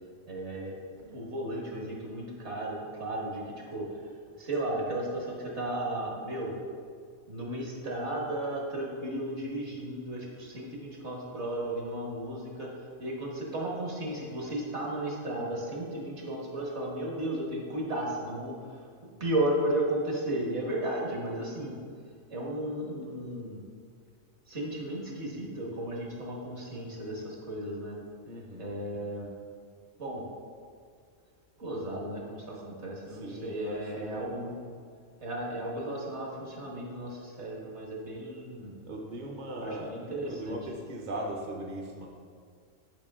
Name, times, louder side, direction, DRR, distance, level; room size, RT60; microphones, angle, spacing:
voice 1, 0.3-3.9 4.3-6.5 7.3-18.9 19.2-21.8 22.3-23.6 24.5-28.0 28.6-29.3 30.0-30.2 31.6-34.6 35.2-38.7 39.6-40.6, right 1 dB, 60° right, -3 dB, 1.9 m, -34 dB
voice 2, 28.2-28.7 33.1-34.3 38.8-42.1, right 1 dB, 40° right, -1 dB, 0.9 m, -39 dB
10.0 x 5.7 x 3.6 m, 2.1 s
omnidirectional pair, 1.3 m